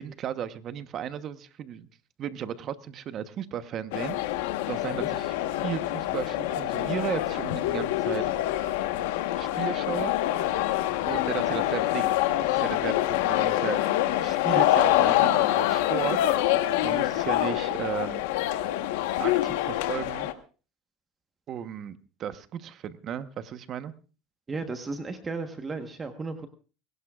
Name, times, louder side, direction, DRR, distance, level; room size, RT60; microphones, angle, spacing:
voice 1, 0.0-1.9 2.2-4.2 4.7-5.4 5.6-8.2 9.4-10.1 11.1-12.1 12.4-13.8 14.2-16.2 16.8-18.2 19.2-20.3 21.5-23.9, right 9 dB, 45° right, 12 dB, 1.0 m, -35 dB
sound 1, 3.9-20.3, left 14 dB, 85° left, 1.2 m, -26 dB
voice 2, 24.5-26.5, right 3 dB, 20° right, 7 dB, 1.2 m, -35 dB
21.5 x 17.5 x 2.4 m, 0.36 s
supercardioid pair, 125°, 0 cm